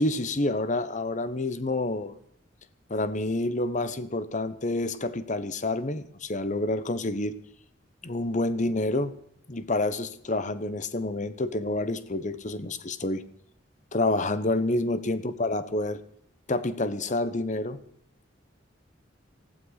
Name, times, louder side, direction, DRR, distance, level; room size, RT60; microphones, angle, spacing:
voice 1, 0.0-2.2 2.9-7.3 8.0-9.1 9.5-13.2 13.9-16.0 16.5-17.8, left 2 dB, 40° left, 13 dB, 1.0 m, -28 dB
19.5 x 15.5 x 4.1 m, 0.68 s
head